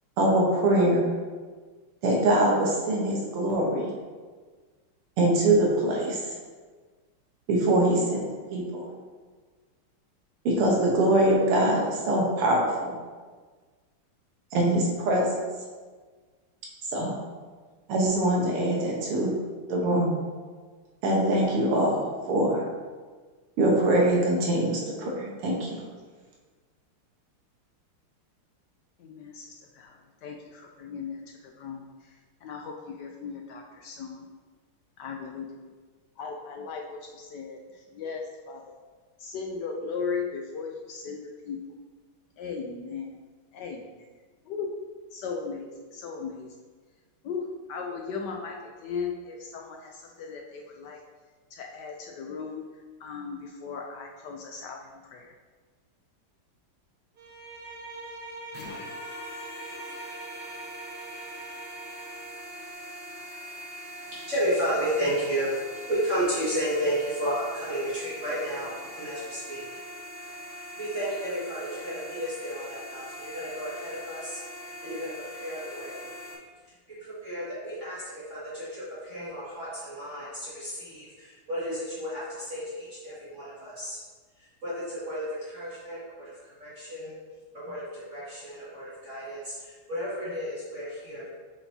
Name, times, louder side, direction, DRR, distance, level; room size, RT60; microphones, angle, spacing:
voice 1, 0.2-1.1 2.0-3.9 5.2-6.2 7.5-8.2 8.5-8.9 10.5-13.0 14.5-15.3 16.9-17.1 17.9-19.4 19.7-20.1 21.0-22.6 23.6-25.8, right 1 dB, 90° right, -2 dB, 2.0 m, -23 dB
voice 2, 29.0-29.5 29.7-34.3 35.0-35.7 36.2-38.8 39.2-41.6 42.4-43.2 43.5-43.9 44.5-44.7 45.1-46.5 47.2-51.0 51.5-52.6 53.0-55.3, left 5 dB, 75° left, 1 dB, 0.9 m, -37 dB
Bowed string instrument, 57.2-62.4, right 2 dB, 50° right, 1.7 m, -43 dB
sound 1, 58.5-76.4, equal, 60° left, 1.5 m, -42 dB
voice 3, 64.3-69.7 70.8-74.4 74.8-76.1 76.6-84.0 84.4-87.2 87.5-91.3, equal, 35° right, -10 dB, 2.0 m, -32 dB
7.1 x 5.4 x 2.7 m, 1.4 s
omnidirectional pair, 2.4 m